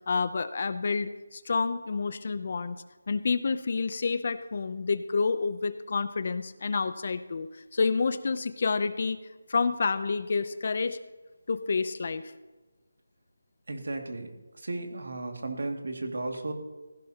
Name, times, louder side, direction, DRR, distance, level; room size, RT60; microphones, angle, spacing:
voice 1, 0.1-2.8 3.1-9.2 9.5-11.0 11.5-12.2, left 4 dB, 35° left, 13 dB, 0.6 m, -29 dB
voice 2, 13.7-14.3 14.5-16.5, right 2 dB, 60° right, 4 dB, 2.2 m, -34 dB
16.0 x 15.5 x 2.9 m, 1.2 s
figure-of-eight pair, 175°, 0 cm